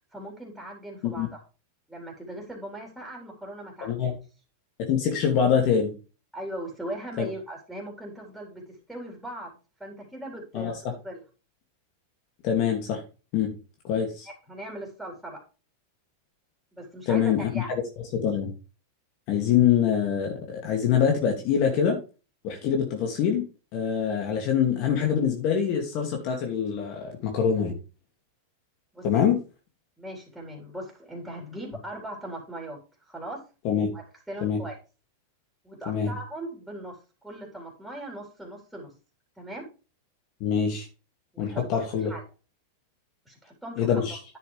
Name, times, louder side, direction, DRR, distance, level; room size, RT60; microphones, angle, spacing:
voice 1, 0.1-1.4 1.9-4.1 6.3-9.5 9.8-10.7 11.0-11.2 14.3-15.4 16.7-17.7 28.9-29.2 30.0-33.4 33.9-34.8 35.6-37.0 37.2-38.9 39.4-39.7 41.3-42.2 43.3-44.2, right 1 dB, ahead, -1 dB, 4.1 m, -39 dB
voice 2, 3.8-4.1 4.9-5.9 7.2-7.3 10.5-10.7 12.4-13.0 13.3-13.5 13.8-14.3 17.1-17.8 18.1-18.5 19.3-22.0 22.4-23.4 23.7-27.7 29.0-29.4 33.6-33.9 34.4-34.6 35.9-36.1 40.4-40.9 41.4-42.1 43.8-44.2, left 8 dB, 50° left, 2 dB, 2.4 m, -24 dB
10.0 x 7.0 x 3.4 m, 0.33 s
hypercardioid pair, 120°, 0 cm